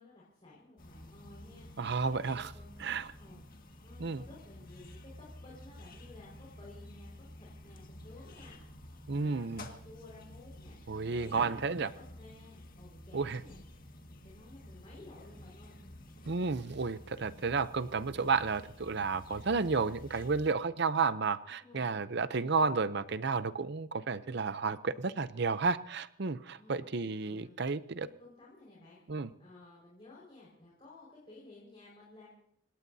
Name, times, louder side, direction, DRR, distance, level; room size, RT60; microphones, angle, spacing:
voice 1, 0.0-8.6 8.9-15.8 21.6-21.9 26.6-26.9 27.2-27.5 28.0-29.0 29.4-32.3, left 2 dB, 25° left, -6 dB, 5.0 m, -55 dB
sound 1, 0.8-20.5, left 1 dB, 40° left, 1.9 m, -51 dB
voice 2, 1.8-2.5 2.8-3.1 4.0-4.2 9.1-9.7 10.9-11.9 13.1-13.4 16.3-28.1 29.1-29.3, right 4 dB, 50° right, 14 dB, 0.6 m, -32 dB
29.0 x 17.5 x 2.7 m, 0.69 s
head